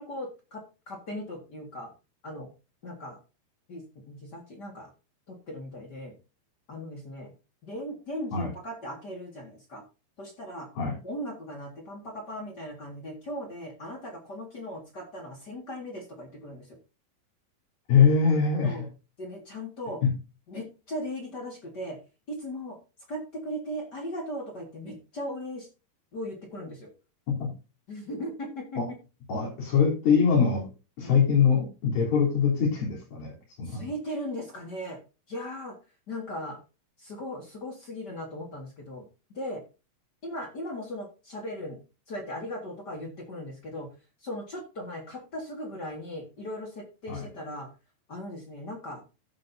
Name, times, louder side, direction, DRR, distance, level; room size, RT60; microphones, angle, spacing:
voice 1, 0.0-1.9 2.2-2.5 2.8-3.2 3.7-4.9 5.3-6.1 6.7-7.3 7.6-9.8 10.2-10.7 11.0-16.8 18.6-18.9 19.2-20.0 20.5-22.0 22.3-22.8 23.1-25.7 26.1-26.9 27.9-28.8 31.0-31.2 33.6-35.0 35.3-35.8 36.1-36.6 37.0-39.1 39.3-39.6 40.2-41.8 42.1-43.9 44.2-47.7 48.1-49.0, equal, 35° left, 2 dB, 1.8 m, -38 dB
voice 2, 17.9-18.8 27.4-27.5 28.8-28.9 29.3-30.7 31.0-33.3 33.6-33.9 47.1-47.2, left 6 dB, 85° left, -4 dB, 5.4 m, -23 dB
15.0 x 6.5 x 2.7 m, 0.30 s
omnidirectional pair, 4.1 m